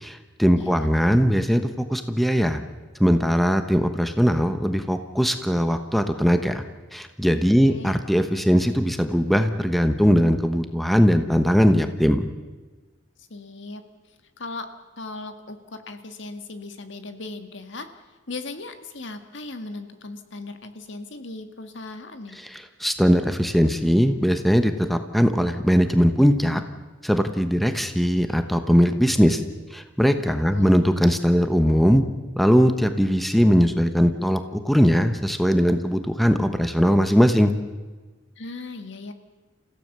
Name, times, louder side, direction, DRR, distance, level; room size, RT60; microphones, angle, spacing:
voice 1, 0.0-1.6 1.9-2.6 3.0-6.6 6.9-12.3 22.8-26.6 27.0-29.4 29.7-32.0 32.4-34.4 34.6-37.5, equal, ahead, 8 dB, 1.1 m, -20 dB
voice 2, 0.5-0.9 7.6-8.0 13.3-13.8 14.4-14.7 15.0-17.9 18.3-22.4 30.5-30.7 38.4-39.1, left 3 dB, 65° left, 8 dB, 1.9 m, -37 dB
30.0 x 16.0 x 6.8 m, 1.3 s
head